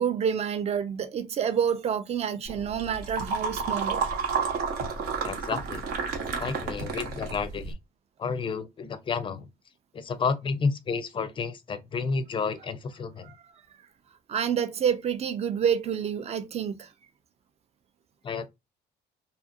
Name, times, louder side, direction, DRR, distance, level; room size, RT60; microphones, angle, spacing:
voice 1, 0.0-4.0 13.2-13.4 14.3-16.9, right 8 dB, 40° right, 0.5 m, -28 dB
sound 1, 2.4-7.7, right 5 dB, 70° right, 1.0 m, -31 dB
voice 2, 5.2-5.8 6.4-7.8 8.2-9.5 9.9-13.3 18.2-18.5, left 5 dB, 30° left, 0.4 m, -31 dB
2.7 x 2.5 x 2.4 m
cardioid pair, 110°, 17 cm